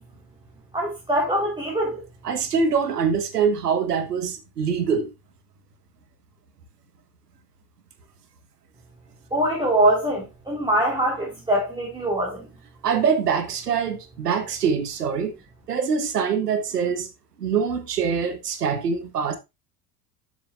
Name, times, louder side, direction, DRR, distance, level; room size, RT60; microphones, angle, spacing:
voice 1, 0.7-2.0 9.3-12.5, right 1 dB, 10° right, 3.8 m, -23 dB
voice 2, 2.2-5.1 12.8-15.3 15.7-17.1 17.4-19.4, right 6 dB, 75° right, 1.6 m, -24 dB
11.5 x 8.0 x 2.4 m
figure-of-eight pair, 65°, 47 cm